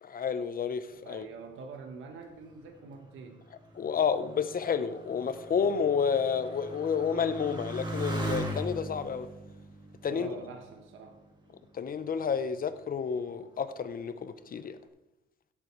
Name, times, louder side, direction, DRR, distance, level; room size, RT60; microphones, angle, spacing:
voice 1, 0.0-1.3 3.8-9.3 10.0-10.3 11.7-14.8, left 6 dB, 45° left, 0.9 m, -30 dB
voice 2, 1.0-3.4 10.1-11.2, right 4 dB, 80° right, 1.4 m, -45 dB
Motorcycle, 2.3-11.3 12.0-12.6, right 1 dB, 25° right, 2.8 m, -39 dB
16.0 x 7.6 x 4.6 m
cardioid pair, 90°, 20 cm